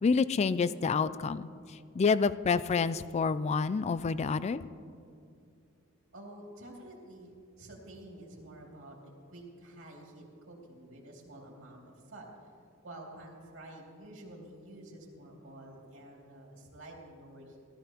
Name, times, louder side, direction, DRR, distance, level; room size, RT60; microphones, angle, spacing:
voice 1, 0.0-1.5 1.9-4.6, left 5 dB, 30° left, 16 dB, 0.3 m, -28 dB
voice 2, 6.1-9.0 9.3-11.8 12.1-12.3 12.8-17.6, right 1 dB, 70° right, -1 dB, 2.5 m, -49 dB
17.0 x 12.5 x 3.0 m, 2.3 s
head